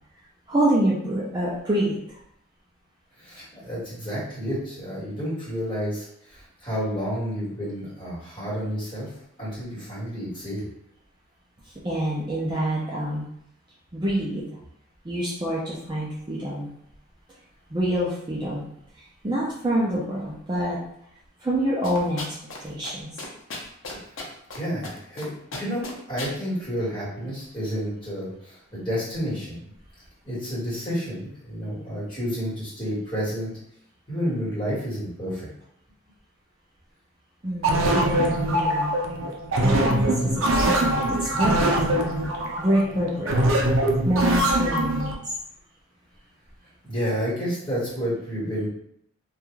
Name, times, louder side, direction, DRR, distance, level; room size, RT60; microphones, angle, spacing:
voice 1, 0.5-2.0 11.8-13.3 13.9-14.4 15.0-16.7 17.7-18.6 19.2-20.8 21.4-22.3 22.6-23.1 37.4-38.9 39.5-41.7 42.6-43.3 44.0-45.1, right 1 dB, 20° right, -6 dB, 0.4 m, -26 dB
voice 2, 3.2-9.1 9.4-10.7 24.1-29.6 30.2-33.5 34.1-35.5 46.9-48.7, equal, 25° left, -9 dB, 1.4 m, -30 dB
sound 1, 21.8-22.6 22.8-22.9 23.2-24.6 24.8-25.2 25.5-26.3, left 3 dB, 75° left, 0.6 m, -35 dB
sound 2, 37.6-45.1, right 1 dB, 85° right, 0.5 m, -23 dB
2.4 x 2.3 x 3.0 m, 0.71 s
head